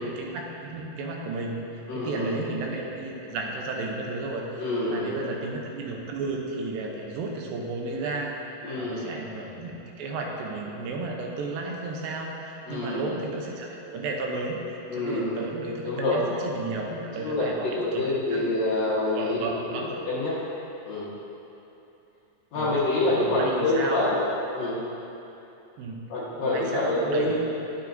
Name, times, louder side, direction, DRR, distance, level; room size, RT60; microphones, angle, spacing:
voice 1, 0.0-1.7 1.9-14.6 14.9-18.5 19.1-20.0 22.6-22.8 23.0-24.1 25.8-26.0 26.4-27.4, right 3 dB, 85° right, 0 dB, 2.6 m, -33 dB
voice 2, 1.9-2.3 4.6-5.2 8.6-9.0 12.7-13.0 14.9-15.4 15.8-16.2 16.9-19.4 19.7-20.4 20.9-21.1 22.5-24.2 24.5-24.8 26.1-27.4, left 2 dB, 60° left, -9 dB, 2.2 m, -26 dB
10.0 x 7.7 x 2.6 m, 2.9 s
omnidirectional pair, 4.1 m